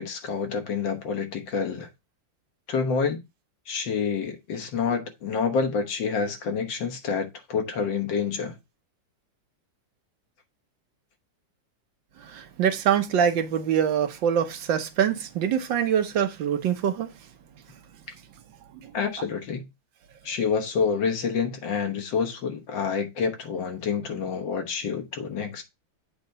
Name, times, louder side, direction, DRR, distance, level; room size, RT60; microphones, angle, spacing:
voice 1, 0.0-1.9 2.7-3.2 3.7-8.6 18.9-19.7 20.2-25.6, left 6 dB, 75° left, 1.8 m, -28 dB
voice 2, 12.2-17.3 17.7-17.8 18.7-18.9, right 8 dB, 80° right, 1.5 m, -25 dB
8.1 x 2.8 x 5.3 m
omnidirectional pair, 2.1 m